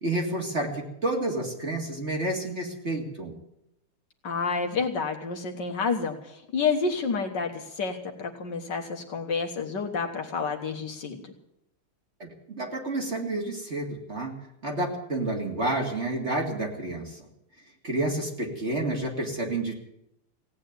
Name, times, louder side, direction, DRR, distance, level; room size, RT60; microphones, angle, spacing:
voice 1, 0.0-3.3 12.2-14.3 14.6-17.2 17.8-19.7, right 2 dB, 30° right, 1 dB, 2.3 m, -30 dB
voice 2, 4.2-11.3, left 5 dB, 55° left, 3 dB, 1.9 m, -29 dB
17.0 x 8.9 x 9.5 m, 0.81 s
omnidirectional pair, 2.3 m